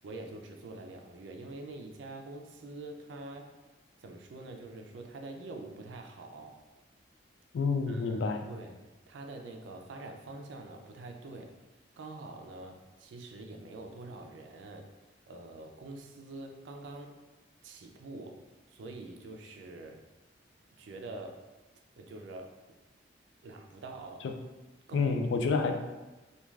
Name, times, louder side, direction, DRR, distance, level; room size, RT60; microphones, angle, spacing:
voice 1, 0.0-3.5 4.0-6.6 7.9-8.8 9.1-11.5 12.0-14.9 15.3-17.2 17.6-18.4 18.7-20.0 20.8-21.4 21.9-22.5 23.4-24.3 24.9-25.1 25.4-25.5, right 2 dB, 85° right, 3 dB, 0.4 m, -45 dB
voice 2, 7.5-8.4 24.2-24.3 24.9-26.0, left 4 dB, 75° left, 5 dB, 0.3 m, -29 dB
3.1 x 2.3 x 2.3 m, 1.1 s
head